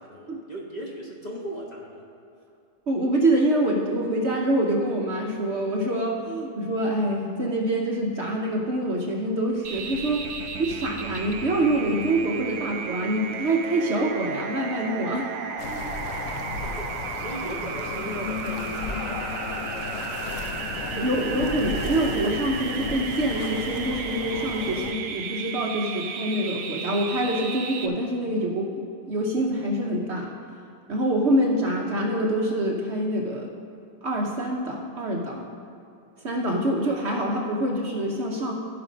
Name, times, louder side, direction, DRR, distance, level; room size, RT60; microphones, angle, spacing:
voice 1, 0.0-2.0 16.2-20.4 20.7-21.7, right 1 dB, 30° left, -2 dB, 1.0 m, -39 dB
voice 2, 2.9-10.2 10.6-15.3 20.9-28.7 29.1-30.3 30.9-33.5 34.0-35.5 36.2-38.5, right 1 dB, 50° right, 0 dB, 1.0 m, -25 dB
sound 1, 9.6-27.9, right 6 dB, 90° right, 1.3 m, -34 dB
sound 2, 15.6-24.9, left 5 dB, 65° left, 0.9 m, -34 dB
15.0 x 5.2 x 5.1 m, 2.6 s
omnidirectional pair, 1.6 m